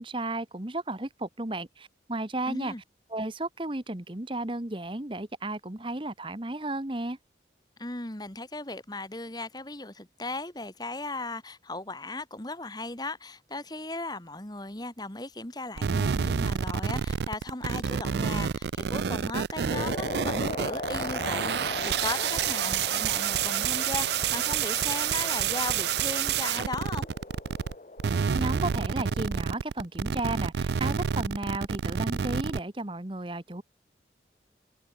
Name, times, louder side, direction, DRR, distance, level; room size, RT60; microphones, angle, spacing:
voice 1, 0.0-2.7 3.1-7.2 28.1-33.6, right 2 dB, 30° right, 1.2 m, -34 dB
voice 2, 2.5-2.8 7.8-27.1, left 2 dB, 20° left, 2.0 m, -37 dB
sound 1, 15.8-27.7 28.0-32.6, right 7 dB, 70° right, 0.4 m, -28 dB
sound 2, 19.7-29.5, left 3 dB, 40° left, 0.8 m, -39 dB
head